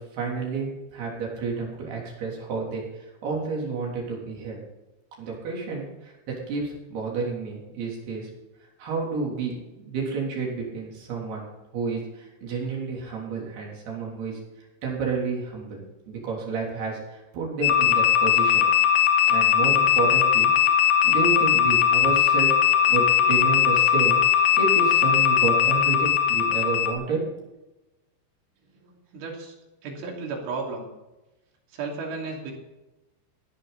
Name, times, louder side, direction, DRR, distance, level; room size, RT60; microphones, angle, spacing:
voice 1, 0.0-2.8 3.2-4.6 5.2-6.1 6.5-8.3 8.8-11.4 11.7-14.4 14.8-18.7 19.3-20.5 20.8-22.5 22.9-27.5, right 4 dB, 60° right, -2 dB, 5.3 m, -30 dB
sound 1, 17.6-26.9, left 10 dB, 85° left, 1.6 m, -20 dB
voice 2, 28.8-29.5 29.8-30.9 31.7-32.5, right 4 dB, 85° right, -1 dB, 5.4 m, -34 dB
17.0 x 11.5 x 4.2 m, 1.0 s
omnidirectional pair, 5.3 m